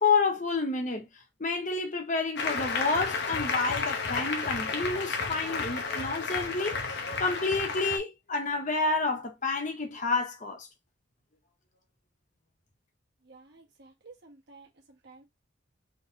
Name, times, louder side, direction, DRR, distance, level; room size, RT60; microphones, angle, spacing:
voice 1, 0.0-1.1 1.4-6.8 7.2-10.7, left 3 dB, 40° left, 1.2 m, -29 dB
Applause, 2.4-8.0, left 4 dB, 60° left, 0.9 m, -32 dB
voice 2, 13.2-15.2, right 3 dB, 60° right, 1.2 m, -53 dB
3.9 x 3.4 x 2.8 m
head